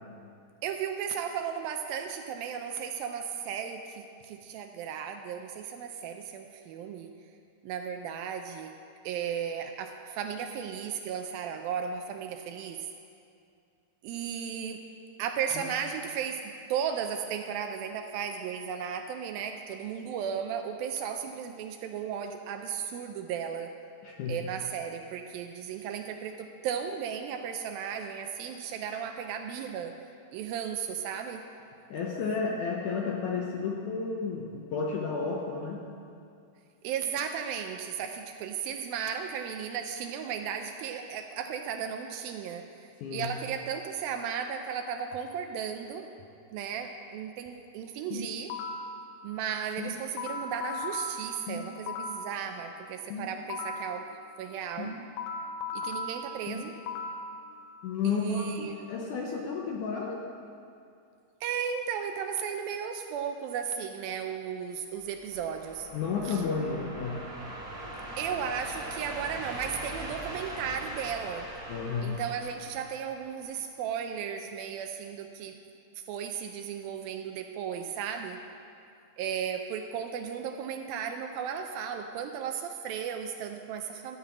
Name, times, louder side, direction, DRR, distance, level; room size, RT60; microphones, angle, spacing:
voice 1, 0.6-7.1 7.6-8.8 9.0-12.9 14.0-14.8 15.2-23.7 24.3-29.9 30.3-31.4 36.8-46.1 46.5-48.5 49.2-54.1 54.4-55.0 55.7-56.8 58.0-58.9 61.4-65.9 66.3-66.4 68.2-71.5 72.0-75.6 76.0-78.4 79.2-84.2, right 7 dB, 80° right, 5 dB, 2.2 m, -35 dB
voice 2, 24.0-24.4 31.9-35.8 43.0-43.3 57.8-60.2 65.9-67.3 71.7-72.2, left 5 dB, 70° left, -1 dB, 1.9 m, -32 dB
sound 1, 48.1-49.0 49.8-52.3 53.1-54.0 54.8-57.3, left 3 dB, 90° left, 2.7 m, -36 dB
sound 2, 65.0-73.5, right 1 dB, 45° right, 1.0 m, -41 dB
13.0 x 5.7 x 8.4 m, 2.5 s
omnidirectional pair, 4.5 m